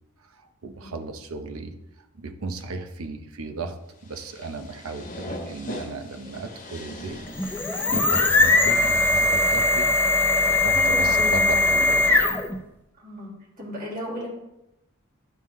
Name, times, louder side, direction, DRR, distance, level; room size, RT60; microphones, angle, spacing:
voice 1, 0.2-1.7 2.1-3.8 4.0-7.2 7.8-9.9 10.5-12.4, right 3 dB, 85° right, 5 dB, 0.8 m, -35 dB
sound 1, 4.0-10.2, equal, 35° left, 1.0 m, -39 dB
sound 2, 7.3-12.6, left 2 dB, 10° left, 0.4 m, -20 dB
voice 2, 10.7-11.7 13.0-13.3 13.6-14.3, equal, 40° right, -4 dB, 1.9 m, -34 dB
10.5 x 3.7 x 3.1 m, 0.87 s
head